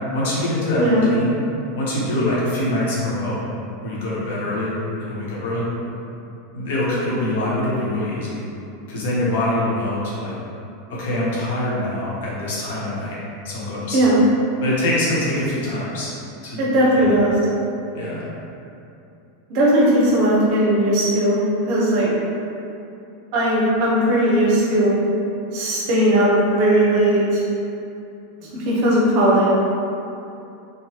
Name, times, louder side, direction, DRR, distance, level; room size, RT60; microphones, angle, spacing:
voice 1, 0.1-1.3 1.7-3.4 3.8-4.7 5.0-5.6 6.5-8.4 8.9-10.3 10.9-13.2 13.4-14.0 14.6-16.1 16.4-16.6 16.9-17.1 17.9-18.2, left 1 dB, 65° left, -7 dB, 0.8 m, -24 dB
voice 2, 16.6-17.3 19.5-22.1 23.3-24.9 25.5-27.4 28.4-29.5, right 1 dB, 55° right, -5 dB, 0.8 m, -18 dB
3.0 x 2.1 x 2.9 m, 2.7 s
hypercardioid pair, 90°, 0 cm